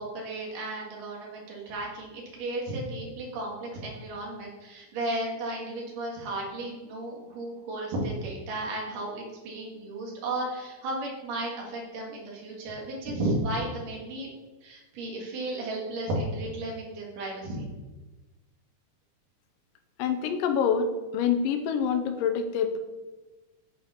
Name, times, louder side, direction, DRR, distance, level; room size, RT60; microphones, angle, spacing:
voice 1, 0.0-14.3 14.6-17.7, right 1 dB, 70° right, -3 dB, 3.3 m, -34 dB
voice 2, 20.0-22.8, left 7 dB, 90° left, 7 dB, 2.3 m, -26 dB
8.1 x 4.2 x 5.5 m, 1.2 s
omnidirectional pair, 3.9 m